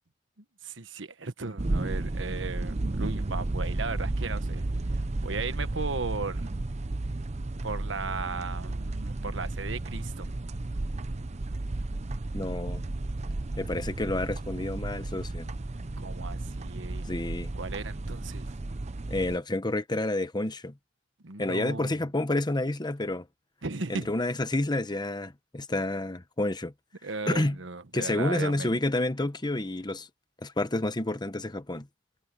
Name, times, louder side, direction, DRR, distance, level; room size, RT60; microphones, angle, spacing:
voice 1, 0.4-4.6 5.2-6.4 7.6-10.3 16.0-17.1 17.5-18.5 21.2-22.0 23.6-24.1 27.0-28.8, right 4 dB, 75° right, 1.3 m, -36 dB
sound 1, 1.6-19.4, right 2 dB, 35° right, 0.7 m, -33 dB
voice 2, 12.3-12.8 13.6-15.5 17.1-17.5 19.1-20.8 21.4-23.3 23.9-26.7 27.3-27.6 27.9-30.1 30.4-31.9, left 2 dB, 25° left, 1.1 m, -29 dB
head